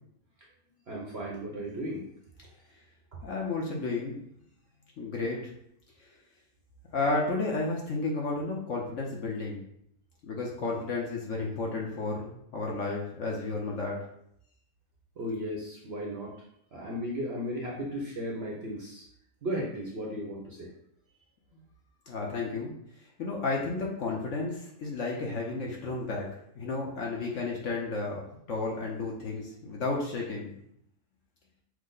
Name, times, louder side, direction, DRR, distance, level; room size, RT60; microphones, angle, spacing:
voice 1, 0.9-2.1 15.2-16.3 16.7-19.0 19.4-20.7, equal, 50° right, -3 dB, 0.8 m, -35 dB
voice 2, 3.2-4.2 5.0-5.5 6.0-6.1 6.9-9.6 10.2-14.0 21.5-21.6 22.1-22.7 23.2-26.3 26.5-30.5, left 3 dB, 55° left, -2 dB, 1.0 m, -32 dB
6.2 x 2.1 x 3.8 m, 0.72 s
omnidirectional pair, 1.8 m